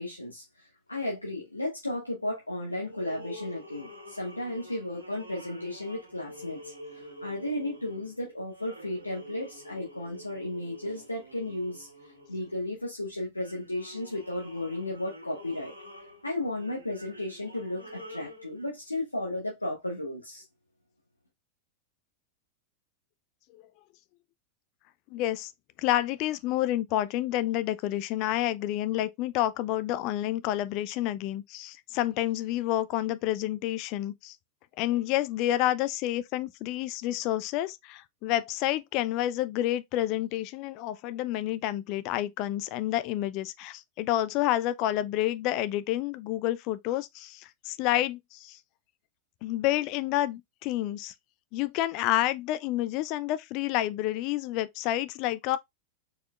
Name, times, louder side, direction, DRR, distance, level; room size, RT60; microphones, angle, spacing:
voice 1, 0.0-11.9 12.3-15.7 16.2-20.4, left 1 dB, 85° left, 0.9 m, -34 dB
sound 1, 2.8-12.9 13.4-18.7, equal, 85° right, 1.7 m, -47 dB
voice 2, 25.1-25.5 25.8-34.4 34.8-48.6 49.4-51.1 51.5-55.6, left 14 dB, 40° left, 0.4 m, -29 dB
4.5 x 4.2 x 2.2 m
figure-of-eight pair, 90°, 0 cm